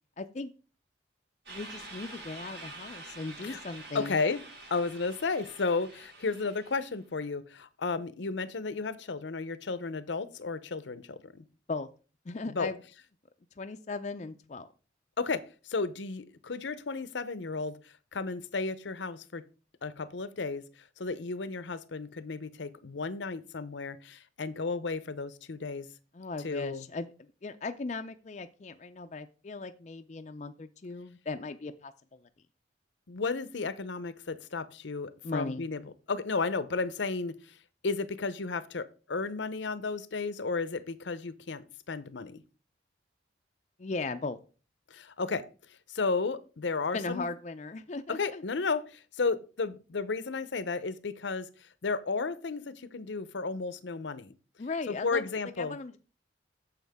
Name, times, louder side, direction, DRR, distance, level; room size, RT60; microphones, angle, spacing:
voice 1, 0.2-0.5 1.5-4.2 11.7-11.9 12.3-12.8 13.6-14.7 26.1-32.2 35.2-35.6 43.8-44.4 46.9-48.4 54.6-55.3 55.6-56.0, left 3 dB, 35° left, 7 dB, 0.4 m, -37 dB
sound 1, 1.5-6.9, right 2 dB, 75° right, 5.2 m, -47 dB
voice 2, 3.9-4.4 4.7-11.4 12.5-12.7 15.2-19.4 19.8-20.6 21.0-25.9 26.4-26.9 33.1-35.8 36.1-37.6 37.8-42.4 44.9-45.5 45.9-47.2 48.1-54.3 54.9-55.8, left 4 dB, 75° left, 15 dB, 0.7 m, -33 dB
9.3 x 7.2 x 3.5 m, 0.36 s
head